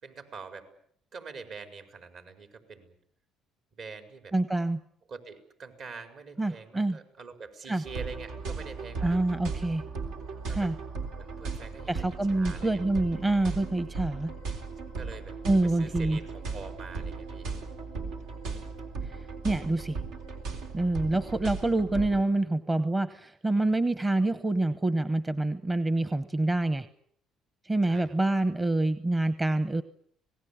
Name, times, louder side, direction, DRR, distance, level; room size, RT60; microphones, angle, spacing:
voice 1, 0.0-0.7 1.1-2.9 3.7-4.3 5.1-9.2 10.5-10.7 11.2-12.8 15.0-15.4 15.6-17.5 27.9-28.2, right 4 dB, 60° right, 7 dB, 5.0 m, -45 dB
voice 2, 4.3-4.8 6.4-7.0 7.7-7.8 9.0-9.8 10.5-10.8 11.9-14.3 15.4-16.2 19.0-20.0 20.7-26.9 27.6-29.8, right 2 dB, 20° right, 13 dB, 1.0 m, -27 dB
sound 1, 7.8-22.2, right 4 dB, 85° right, 3.8 m, -37 dB
27.0 x 19.0 x 8.7 m, 0.66 s
cardioid pair, 100°, 0 cm